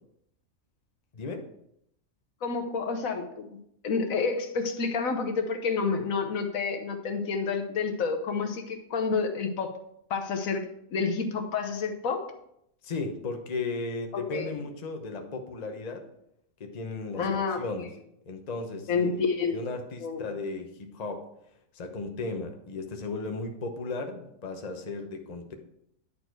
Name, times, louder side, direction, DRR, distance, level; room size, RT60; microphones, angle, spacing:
voice 1, 1.1-1.4 12.8-16.0 16.6-17.2 17.6-17.9 18.3-19.1 19.5-21.3 21.7-25.5, left 3 dB, 35° left, 4 dB, 0.9 m, -35 dB
voice 2, 2.4-3.6 3.8-9.8 10.1-10.6 10.9-12.3 14.1-14.5 17.1-17.6 18.9-19.6 20.0-20.3, left 5 dB, 75° left, 5 dB, 1.3 m, -29 dB
10.0 x 4.5 x 4.6 m, 0.75 s
omnidirectional pair, 1.5 m